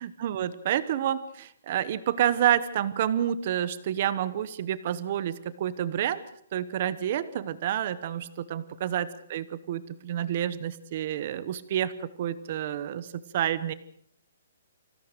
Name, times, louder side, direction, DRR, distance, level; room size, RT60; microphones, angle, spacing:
voice 1, 0.0-6.2 6.5-8.2 8.5-13.1 13.3-13.7, right 10 dB, 30° right, 15 dB, 1.0 m, -29 dB
26.0 x 16.0 x 6.7 m, 0.66 s
hypercardioid pair, 180°, 0 cm